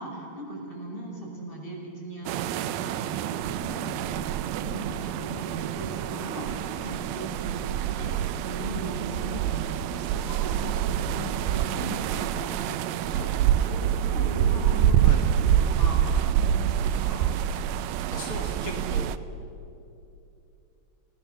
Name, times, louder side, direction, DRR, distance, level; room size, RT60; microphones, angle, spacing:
voice 1, 0.0-4.3 4.6-17.3, right 1 dB, 15° left, -2 dB, 6.0 m, -38 dB
sound 1, 2.3-19.2, right 10 dB, 80° right, 2.5 m, -26 dB
voice 2, 18.1-19.2, left 2 dB, 50° left, 2 dB, 1.0 m, -37 dB
30.0 x 18.5 x 7.0 m, 2.7 s
omnidirectional pair, 4.3 m